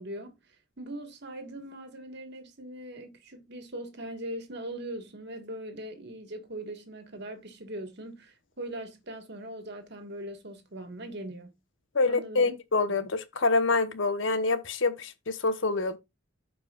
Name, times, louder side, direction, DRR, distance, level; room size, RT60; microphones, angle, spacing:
voice 1, 0.0-11.6 12.0-12.6 12.9-13.1, right 1 dB, 55° right, 1.6 m, -41 dB
voice 2, 11.9-16.0, left 3 dB, 60° left, 1.0 m, -26 dB
14.0 x 4.8 x 2.4 m
head